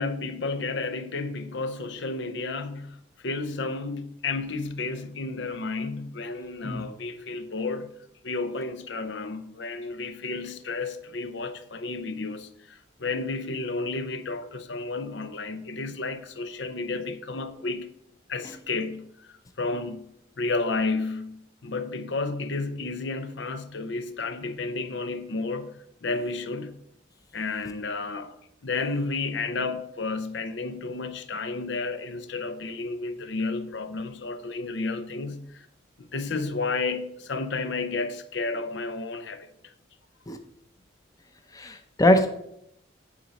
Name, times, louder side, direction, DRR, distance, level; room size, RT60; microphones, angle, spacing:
voice 1, 0.0-7.9 8.2-17.9 18.3-26.8 27.3-28.3 28.6-35.7 36.0-39.7, left 3 dB, 65° left, 0.7 m, -32 dB
voice 2, 41.5-42.3, left 1 dB, 20° left, 0.7 m, -21 dB
10.0 x 4.1 x 6.3 m
head